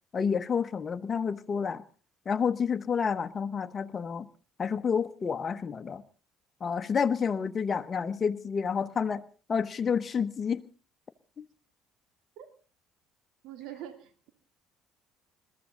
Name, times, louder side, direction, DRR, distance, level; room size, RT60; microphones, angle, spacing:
voice 1, 0.1-1.8 2.2-4.3 4.6-6.0 6.6-9.2 9.5-10.6 11.4-11.5, left 6 dB, 40° left, 1.1 m, -29 dB
voice 2, 13.4-14.3, right 11 dB, 70° right, 2.5 m, -44 dB
21.5 x 14.0 x 3.9 m
hypercardioid pair, 60°, 0 cm